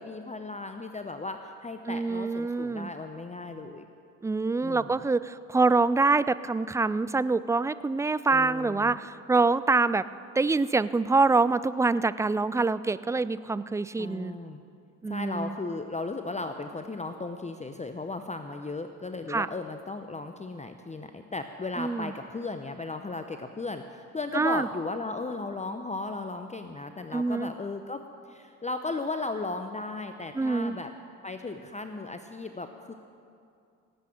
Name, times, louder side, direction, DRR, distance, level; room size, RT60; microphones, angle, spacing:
voice 1, 0.0-3.9 4.6-5.1 8.3-9.0 14.0-14.6 15.0-28.0 28.3-30.9 31.2-32.9, left 3 dB, 15° left, 7 dB, 0.8 m, -36 dB
voice 2, 1.9-2.9 4.2-10.0 10.4-14.4 15.0-15.5 19.3-19.5 21.8-22.1 24.3-24.7 27.1-27.5 30.4-30.7, right 3 dB, 10° right, 16 dB, 0.3 m, -25 dB
17.5 x 8.4 x 7.8 m, 2.4 s
hypercardioid pair, 50°, 40 cm